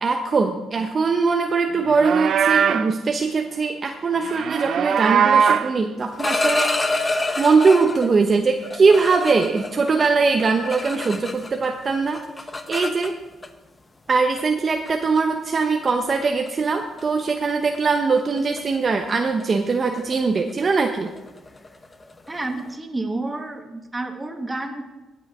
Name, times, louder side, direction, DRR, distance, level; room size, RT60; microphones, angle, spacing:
voice 1, 0.0-12.2 12.7-13.2 14.1-21.1, right 4 dB, 40° right, 4 dB, 0.9 m, -21 dB
Livestock farm animals working animals, 1.8-2.9 4.2-5.8, right 7 dB, 65° right, 0.5 m, -20 dB
sound 1, 6.0-8.1 8.6-11.7 11.9-13.5 14.4-14.5 14.9-15.2 15.6-15.9 16.2-16.5 16.8-17.0 17.3-22.7, left 2 dB, 25° left, 0.9 m, -28 dB
voice 2, 22.3-24.8, right 2 dB, 15° right, 4 dB, 1.6 m, -30 dB
17.0 x 6.1 x 4.9 m, 1.0 s
cardioid pair, 90°, 0 cm